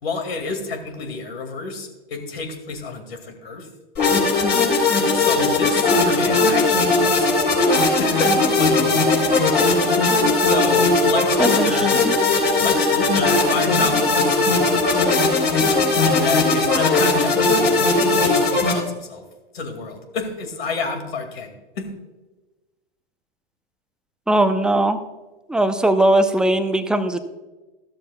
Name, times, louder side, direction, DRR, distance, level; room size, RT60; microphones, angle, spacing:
voice 1, 0.0-3.7 5.1-7.6 8.0-9.0 10.4-11.9 12.6-15.1 16.0-19.2 19.5-21.9, left 4 dB, 75° left, 7 dB, 2.1 m, -29 dB
sound 1, 4.0-18.7, left 3 dB, 35° left, 3.7 m, -18 dB
voice 2, 11.4-12.1 24.3-25.0 25.5-27.2, right 1 dB, 5° right, 8 dB, 0.6 m, -19 dB
14.0 x 12.5 x 2.3 m, 1.2 s
hypercardioid pair, 105°, 31 cm